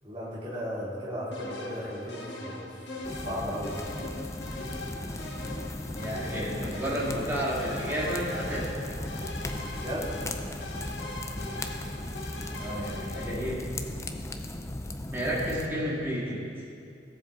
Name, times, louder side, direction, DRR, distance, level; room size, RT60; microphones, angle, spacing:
voice 1, 0.0-2.8 3.2-3.8 9.7-10.1, equal, 30° right, -8 dB, 3.1 m, -35 dB
sound 1, 1.3-13.3, left 2 dB, 70° left, 1.3 m, -41 dB
sound 2, 3.0-15.7, left 1 dB, 15° left, 0.5 m, -37 dB
voice 2, 6.0-8.7 12.5-13.6 15.1-16.4, equal, 10° right, -7 dB, 2.1 m, -31 dB
16.5 x 7.5 x 3.9 m, 2.4 s
head